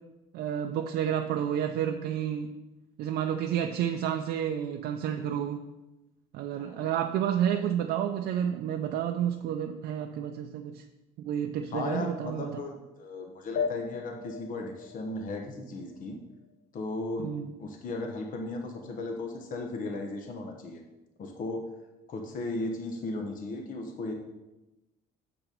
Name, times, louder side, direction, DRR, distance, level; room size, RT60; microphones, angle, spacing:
voice 1, 0.3-2.5 3.0-5.6 6.3-10.8 11.2-12.6 17.2-17.5, right 9 dB, 75° right, 4 dB, 0.6 m, -30 dB
voice 2, 6.5-6.9 11.7-16.2 16.7-17.3 17.6-20.8 21.2-21.6 22.1-24.1, left 2 dB, 55° left, 3 dB, 1.0 m, -36 dB
sound 1, 13.6-16.5, left 6 dB, 85° left, 0.7 m, -37 dB
6.9 x 5.9 x 5.3 m, 1.0 s
cardioid pair, 110°, 17 cm